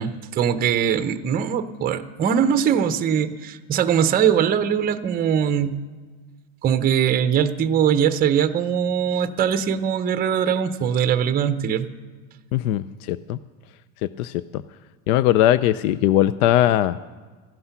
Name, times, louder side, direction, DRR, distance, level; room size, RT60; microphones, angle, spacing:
voice 1, 0.0-5.8 6.6-11.9, right 8 dB, 20° right, 11 dB, 0.5 m, -21 dB
voice 2, 12.5-13.4 14.0-14.4 15.1-17.0, left 13 dB, 80° left, 15 dB, 0.6 m, -20 dB
15.0 x 11.5 x 5.7 m, 1.4 s
supercardioid pair, 130°, 43 cm